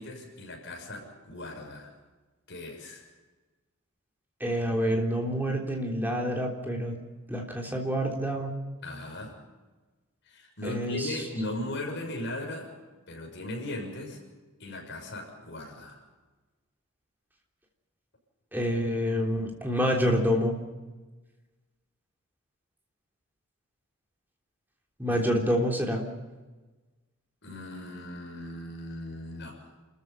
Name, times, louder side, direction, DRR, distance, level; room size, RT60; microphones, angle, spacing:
voice 1, 0.0-1.9 2.5-3.0 8.8-9.3 10.2-12.7 13.1-14.2 14.6-16.0 25.1-25.2 27.4-29.6, left 1 dB, 55° left, 1 dB, 6.7 m, -38 dB
voice 2, 4.4-7.0 7.3-8.5 10.6-11.0 18.5-20.6 25.0-26.0, equal, 10° right, 0 dB, 3.5 m, -27 dB
29.0 x 14.5 x 7.1 m, 1.2 s
head